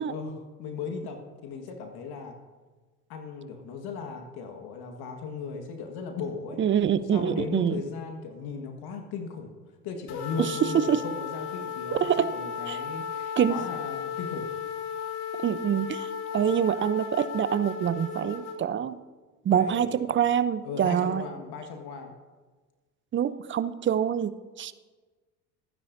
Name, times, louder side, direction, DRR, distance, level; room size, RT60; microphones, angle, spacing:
voice 1, 0.0-2.3 3.1-6.6 6.9-9.5 9.8-14.5 19.5-20.0 20.6-22.1, left 5 dB, 50° left, 4 dB, 1.7 m, -37 dB
voice 2, 6.6-7.8 10.4-11.0 11.9-12.3 12.7-12.8 13.4-13.5 15.4-19.0 19.4-21.3 23.1-24.7, right 9 dB, 25° right, 14 dB, 0.6 m, -25 dB
sound 1, 10.1-18.6, left 7 dB, 70° left, 1.8 m, -35 dB
25.5 x 9.9 x 2.7 m, 1.3 s
hypercardioid pair, 70°, 47 cm